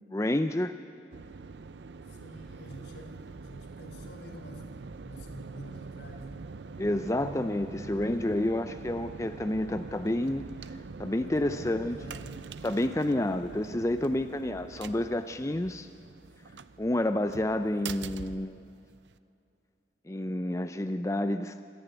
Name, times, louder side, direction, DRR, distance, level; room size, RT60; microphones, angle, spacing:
voice 1, 0.1-0.7 6.8-10.4 11.0-12.0 12.6-15.9 16.8-18.6 20.1-21.6, left 1 dB, 15° left, 9 dB, 0.5 m, -29 dB
sound 1, 1.1-19.2, right 4 dB, 85° right, 0.6 m, -44 dB
voice 2, 2.1-6.5 11.2-13.2, equal, 80° left, 4 dB, 3.2 m, -48 dB
27.0 x 10.5 x 9.1 m, 2.6 s
head